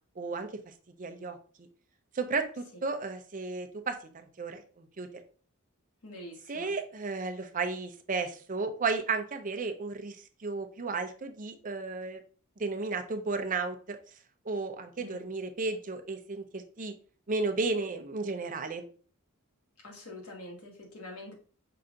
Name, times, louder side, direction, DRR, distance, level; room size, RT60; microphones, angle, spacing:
voice 1, 0.2-0.5 1.0-1.7 2.1-4.0 4.4-5.1 6.5-10.2 10.4-12.2 12.6-14.0 14.5-16.9 17.3-18.8, right 4 dB, 40° right, 6 dB, 0.6 m, -33 dB
voice 2, 6.0-6.7 15.0-15.2 19.8-21.3, left 1 dB, 85° left, 0 dB, 1.6 m, -45 dB
5.6 x 2.6 x 3.7 m, 0.41 s
head